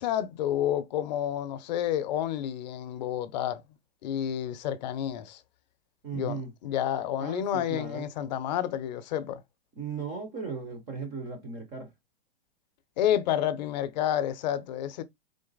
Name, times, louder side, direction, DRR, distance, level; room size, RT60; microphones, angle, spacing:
voice 1, 0.0-3.6 4.0-5.4 6.1-9.4 13.0-15.0, left 10 dB, 40° left, 0.6 m, -30 dB
voice 2, 6.0-6.5 7.2-8.3 9.8-11.9, right 4 dB, 15° right, 0.3 m, -37 dB
3.8 x 2.9 x 3.8 m
supercardioid pair, 160°, 34 cm